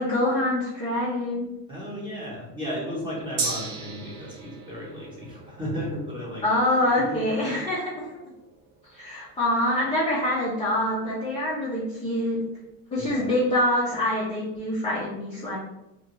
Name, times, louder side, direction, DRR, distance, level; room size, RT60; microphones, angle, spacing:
voice 1, 0.0-1.5 6.4-8.1 8.9-12.4 12.9-15.6, left 1 dB, 15° left, -7 dB, 0.5 m, -25 dB
voice 2, 1.7-6.6 7.0-7.6 9.1-9.2 10.9-11.0 13.0-13.3, equal, 10° right, -5 dB, 0.9 m, -34 dB
Gong, 3.4-11.1 11.5-11.6, right 4 dB, 45° right, 0.7 m, -38 dB
2.5 x 2.3 x 3.0 m, 0.93 s
supercardioid pair, 120°, 49 cm